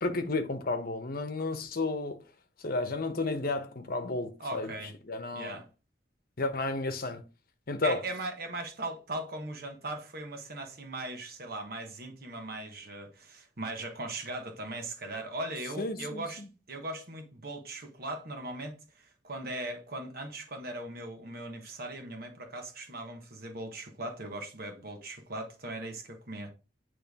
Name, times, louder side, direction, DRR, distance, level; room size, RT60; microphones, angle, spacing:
voice 1, 0.0-2.2 2.6-4.7 5.1-5.6 6.4-7.2 7.7-8.0 15.8-16.5, left 3 dB, 55° left, 0.9 m, -32 dB
voice 2, 4.4-4.9 5.3-5.7 7.8-16.4 16.7-26.5, right 2 dB, 55° right, 1.3 m, -39 dB
8.6 x 3.3 x 3.5 m
head